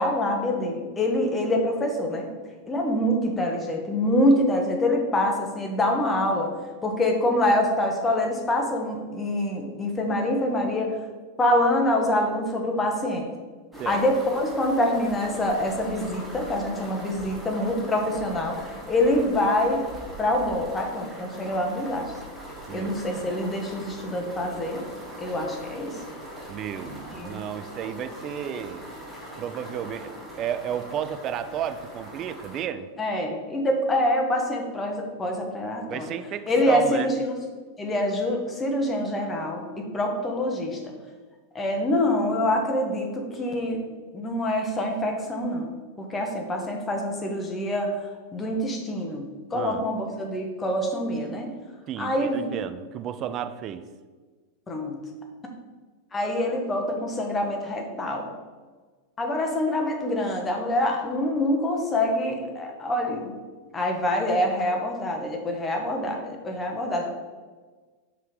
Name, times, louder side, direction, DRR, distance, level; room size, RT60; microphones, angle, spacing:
voice 1, 0.0-2.3 2.7-6.5 6.8-11.0 11.4-13.3 13.8-19.9 20.2-22.1 22.7-24.8 25.2-26.0 26.8-27.4 33.0-36.1 36.5-37.3 37.8-40.9 41.5-43.8 44.1-45.7 46.0-51.5 52.0-52.5 54.7-55.0 56.1-58.3 59.2-63.3 63.7-67.1, left 1 dB, 15° left, 2 dB, 1.0 m, -25 dB
sound 1, 13.7-32.6, equal, 5° right, 1.4 m, -41 dB
voice 2, 22.7-23.3 26.5-28.9 29.4-32.9 35.9-37.1 49.5-49.8 51.9-53.8, right 9 dB, 35° right, 10 dB, 0.4 m, -33 dB
5.5 x 3.7 x 4.9 m, 1.4 s
figure-of-eight pair, 90°, 0 cm